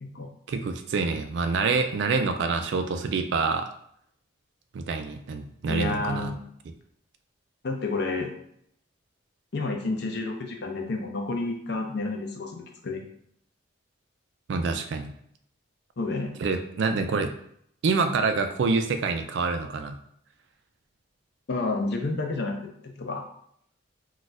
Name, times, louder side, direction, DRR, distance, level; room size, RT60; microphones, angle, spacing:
voice 1, 0.5-3.7 4.7-6.4 14.5-15.1 16.4-17.3 17.8-20.0, right 4 dB, 60° right, 7 dB, 0.3 m, -26 dB
voice 2, 5.7-6.3 7.6-8.3 9.5-13.0 16.0-16.3 21.5-22.6 22.8-23.3, left 3 dB, 55° left, 3 dB, 0.5 m, -30 dB
2.4 x 2.3 x 4.0 m, 0.70 s
head